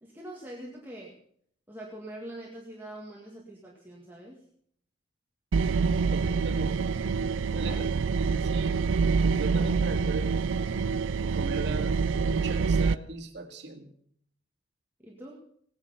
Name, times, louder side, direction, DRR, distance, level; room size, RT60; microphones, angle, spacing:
voice 1, 0.0-1.2 1.7-4.4 7.6-7.9 15.0-15.4, right 1 dB, 10° right, -3 dB, 1.9 m, -43 dB
sound 1, 5.5-12.9, right 5 dB, 80° right, 0.4 m, -26 dB
voice 2, 6.1-6.8 7.5-8.8 9.2-10.5 11.2-13.9, right 2 dB, 60° right, 3 dB, 2.1 m, -38 dB
17.5 x 9.6 x 5.6 m, 0.64 s
head